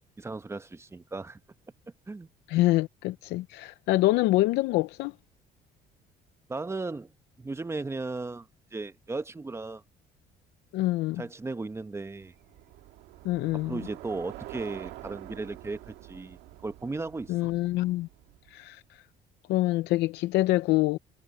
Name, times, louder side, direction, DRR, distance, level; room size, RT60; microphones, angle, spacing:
voice 1, 0.2-1.4 2.1-2.3 6.5-7.1 7.4-9.8 11.2-12.3 13.6-17.5, right 3 dB, 15° right, 0.9 m, -36 dB
voice 2, 2.5-5.1 10.7-11.2 13.2-13.8 17.3-18.1 18.5-19.0 19.5-21.0, left 17 dB, 85° left, 0.6 m, -26 dB
Bicycle, 12.2-18.7, right 16 dB, 90° right, 1.8 m, -46 dB
cardioid pair, 110°, 17 cm